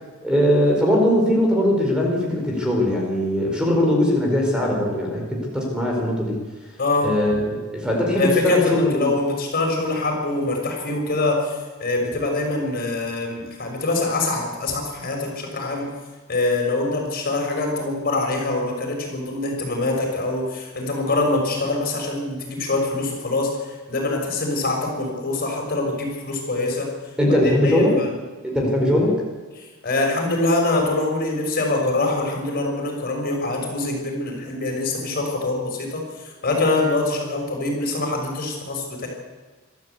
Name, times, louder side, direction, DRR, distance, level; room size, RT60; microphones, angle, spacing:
voice 1, 0.2-6.4 7.0-9.1 27.2-28.0 28.4-29.2, left 1 dB, 5° right, -1 dB, 4.6 m, -20 dB
voice 2, 6.8-7.1 8.1-15.9 16.3-26.9 27.4-28.1 29.6-39.1, left 2 dB, 45° left, 1 dB, 6.2 m, -24 dB
24.5 x 13.5 x 8.3 m, 1.3 s
head